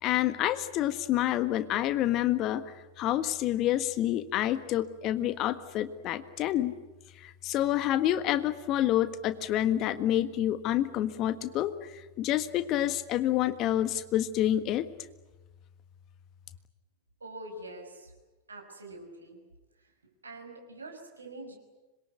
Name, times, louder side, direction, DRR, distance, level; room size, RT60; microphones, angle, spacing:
voice 1, 0.0-6.8 7.2-14.9, left 12 dB, 35° left, 12 dB, 1.5 m, -28 dB
voice 2, 17.2-18.1 18.5-19.4 19.7-21.6, right 1 dB, 75° right, 4 dB, 5.8 m, -45 dB
26.0 x 22.5 x 9.4 m, 1.1 s
figure-of-eight pair, 90°, 0 cm